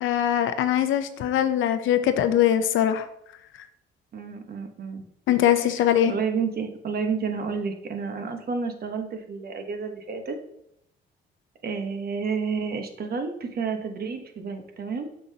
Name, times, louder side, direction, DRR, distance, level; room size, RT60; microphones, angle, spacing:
voice 1, 0.0-3.1 5.3-6.1, left 10 dB, 80° left, 10 dB, 0.6 m, -22 dB
voice 2, 4.1-5.0 6.1-10.4 11.6-15.1, right 5 dB, 50° right, 6 dB, 1.0 m, -30 dB
6.7 x 5.6 x 2.8 m, 0.76 s
cardioid pair, 90°, 20 cm